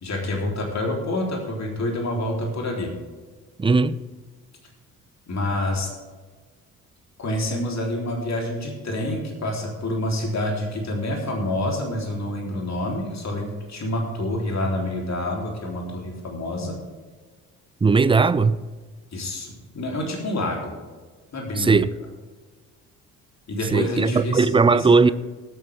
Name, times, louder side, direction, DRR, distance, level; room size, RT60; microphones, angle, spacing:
voice 1, 0.0-2.9 5.3-5.9 7.2-16.8 19.1-20.7 21.3-21.8 23.5-25.1, left 1 dB, 40° left, 3.6 m, -27 dB
voice 2, 3.6-4.0 17.8-18.6 21.6-21.9 23.7-25.1, right 4 dB, 15° right, 0.6 m, -18 dB
19.5 x 9.3 x 3.6 m
figure-of-eight pair, 45°, 42 cm